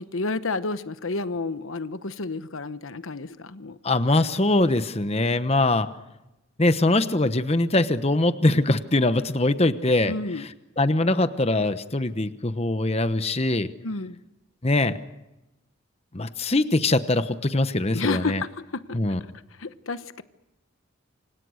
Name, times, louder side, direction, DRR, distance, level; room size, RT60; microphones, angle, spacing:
voice 1, 0.0-3.8 10.0-10.4 13.8-14.2 17.9-19.0 19.6-20.2, left 3 dB, 80° left, 12 dB, 1.1 m, -30 dB
voice 2, 3.8-5.9 6.6-10.1 10.8-13.7 14.6-14.9 16.1-18.4 18.9-19.2, left 2 dB, 30° left, 11 dB, 1.0 m, -22 dB
28.5 x 26.0 x 6.5 m, 0.96 s
head